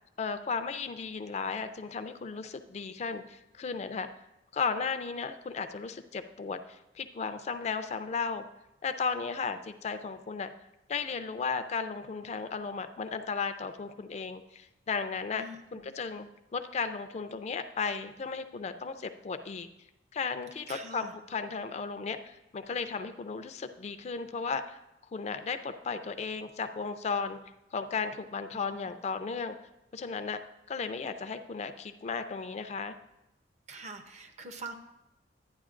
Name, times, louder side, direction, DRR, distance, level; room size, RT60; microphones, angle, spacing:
voice 1, 0.2-4.1 4.5-8.4 8.8-10.5 10.9-15.4 15.7-16.3 16.5-19.7 20.1-24.8 25.1-27.4 27.7-29.6 29.9-30.4 30.7-32.9, left 5 dB, 35° left, 9 dB, 0.4 m, -35 dB
voice 2, 15.3-15.9 20.7-21.1 28.5-28.6 33.7-34.7, right 2 dB, 40° right, 7 dB, 0.6 m, -44 dB
11.5 x 9.4 x 2.5 m, 0.91 s
head